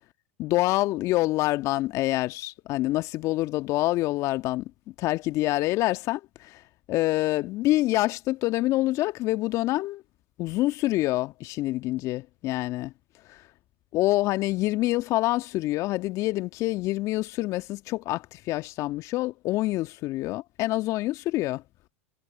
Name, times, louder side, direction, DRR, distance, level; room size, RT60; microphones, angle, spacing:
voice 1, 0.4-4.7 5.0-6.6 6.9-10.0 10.4-12.9 13.3-13.4 13.9-21.6, left 17 dB, 50° left, 1.6 m, -26 dB
hypercardioid pair, 85°, 7 cm